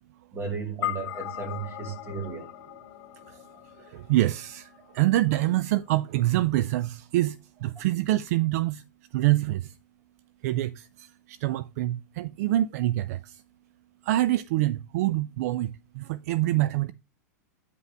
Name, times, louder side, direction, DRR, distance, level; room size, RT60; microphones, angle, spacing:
voice 1, 0.3-2.5, right 5 dB, 25° right, 2.3 m, -34 dB
sound 1, 0.8-5.4, left 13 dB, 55° left, 1.4 m, -38 dB
voice 2, 3.8-8.8 9.1-9.8 10.4-13.4 14.0-16.9, right 15 dB, 60° right, 0.3 m, -26 dB
9.2 x 5.6 x 3.4 m
hypercardioid pair, 105°, 10 cm